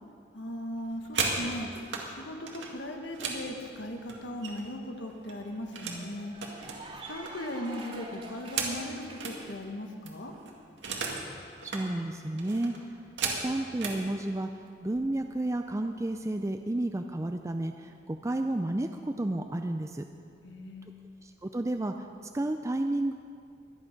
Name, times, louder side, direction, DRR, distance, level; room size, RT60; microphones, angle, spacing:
voice 1, 0.3-6.6 7.1-10.3 20.4-21.1, left 1 dB, 90° left, 3 dB, 1.7 m, -38 dB
sound 1, 0.8-2.1 2.5-4.8 5.1-6.0 6.4-9.4 9.8-9.9 10.1-11.3 11.5-11.9 12.4-14.0 14.8-15.0 15.4-15.7 16.0-16.5, right 4 dB, 85° right, 2.1 m, -36 dB
Cheering / Applause, 4.3-9.6, right 2 dB, 35° right, 2.2 m, -48 dB
voice 2, 11.6-12.7 13.3-14.5 14.8-20.0 21.2-21.9 22.3-23.1, right 1 dB, 15° right, 6 dB, 0.4 m, -31 dB
22.5 x 8.7 x 5.2 m, 2.3 s
head